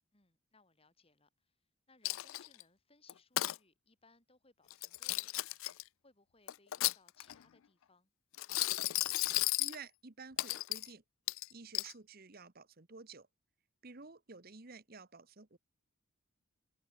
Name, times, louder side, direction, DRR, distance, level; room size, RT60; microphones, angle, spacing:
voice 1, 0.1-1.6 1.9-5.6 6.0-8.1, left 3 dB, 25° left, 3.7 m, -68 dB
Coin (dropping), 2.0-2.6 3.1-3.6 4.7-5.8 6.5-7.4 8.3-9.8 10.4-10.9 11.3-11.9, left 17 dB, 75° left, 0.4 m, -34 dB
voice 2, 9.6-11.0 11.5-13.3 13.8-15.6, right 4 dB, 45° right, 1.3 m, -52 dB
head